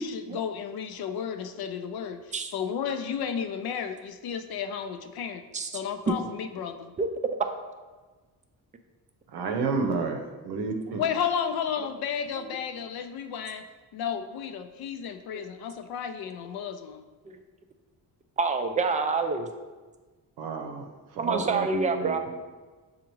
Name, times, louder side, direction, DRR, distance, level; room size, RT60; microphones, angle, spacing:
voice 1, 0.0-5.4 5.7-6.9 11.0-13.6 13.9-17.0, left 7 dB, 70° left, 8 dB, 0.5 m, -33 dB
voice 2, 9.3-11.0 20.4-20.8 21.2-22.2, right 4 dB, 75° right, 3 dB, 0.7 m, -30 dB
voice 3, 18.4-19.5 21.2-22.2, right 4 dB, 20° right, 6 dB, 0.3 m, -27 dB
6.8 x 2.4 x 3.0 m, 1.3 s
cardioid pair, 100°, 39 cm